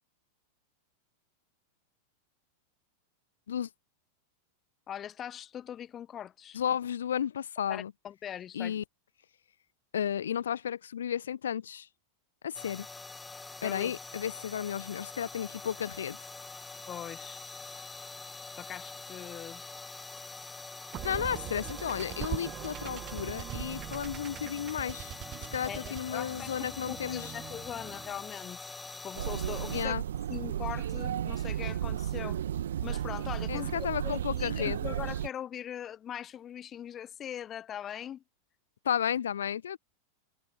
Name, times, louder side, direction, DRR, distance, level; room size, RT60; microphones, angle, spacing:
voice 1, 4.9-6.6 7.7-8.8 13.6-13.9 16.9-17.4 18.6-19.6 25.6-28.6 29.0-29.9 30.3-32.4 32.8-38.2, left 10 dB, 25° left, 0.8 m, -41 dB
voice 2, 6.5-7.9 8.5-8.8 9.9-11.9 12.4-12.9 13.6-16.2 21.0-25.1 25.5-27.3 29.7-30.0 33.5-34.8 38.8-39.8, left 9 dB, 65° left, 1.0 m, -33 dB
sound 1, 12.5-29.9, left 3 dB, 10° left, 1.8 m, -45 dB
sound 2, 20.9-28.3, right 13 dB, 35° right, 0.9 m, -41 dB
sound 3, 29.2-35.3, right 10 dB, 60° right, 1.3 m, -33 dB
figure-of-eight pair, 90°, 0 cm